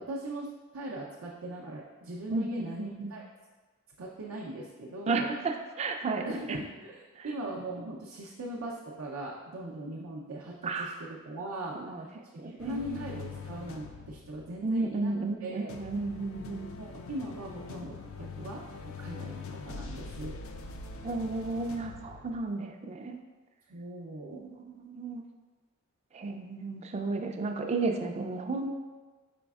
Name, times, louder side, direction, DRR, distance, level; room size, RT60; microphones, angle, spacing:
voice 1, 0.0-3.2 4.0-5.3 6.2-10.9 11.2-12.1 12.4-15.1 15.4-15.7 16.7-20.4 23.7-24.4, right 1 dB, 80° right, -3 dB, 0.5 m, -40 dB
voice 2, 2.3-3.1 5.1-6.2 7.2-7.3 10.6-11.0 11.7-12.1 12.4-13.0 14.6-16.7 21.0-23.2 24.3-25.2 26.1-28.7, right 3 dB, 30° right, 4 dB, 0.4 m, -33 dB
sound 1, 12.6-15.3 15.7-22.4, left 4 dB, 65° left, 0.4 m, -44 dB
5.1 x 4.0 x 2.3 m, 1.3 s
head